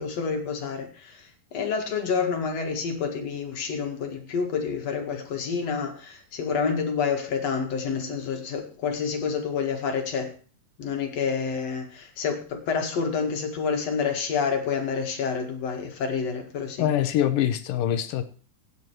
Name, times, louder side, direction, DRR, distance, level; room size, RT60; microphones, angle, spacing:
voice 1, 0.0-10.3 10.8-16.9, left 5 dB, 45° left, 4 dB, 2.6 m, -28 dB
voice 2, 16.8-18.2, left 11 dB, 70° left, 11 dB, 2.4 m, -24 dB
17.0 x 9.5 x 4.6 m, 0.39 s
omnidirectional pair, 4.7 m